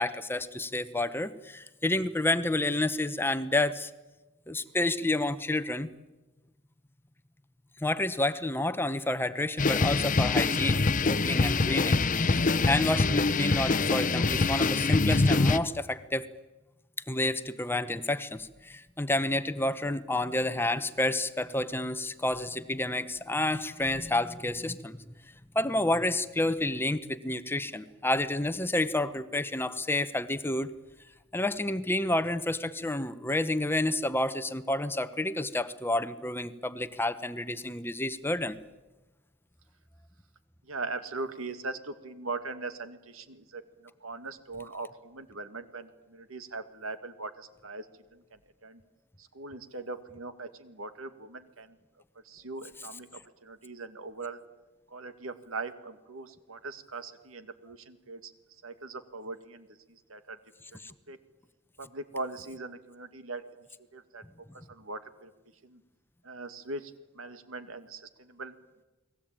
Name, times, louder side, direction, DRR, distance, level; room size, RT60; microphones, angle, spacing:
voice 1, 0.0-3.9 4.5-5.9 7.8-10.8 11.1-12.0 12.3-16.3 17.1-25.0 25.5-30.7 31.3-38.6, left 1 dB, 10° left, 12 dB, 0.9 m, -29 dB
sound 1, 9.6-15.6, left 3 dB, 40° left, 0.8 m, -25 dB
voice 2, 40.6-47.9 48.1-48.8 49.2-51.8 52.2-54.4 54.9-58.3 58.6-60.8 61.1-61.2 61.8-63.7 63.9-64.2 64.5-65.3 65.6-65.8 66.2-68.5, right 3 dB, 75° right, 10 dB, 2.0 m, -41 dB
30.0 x 20.5 x 8.9 m, 1.1 s
head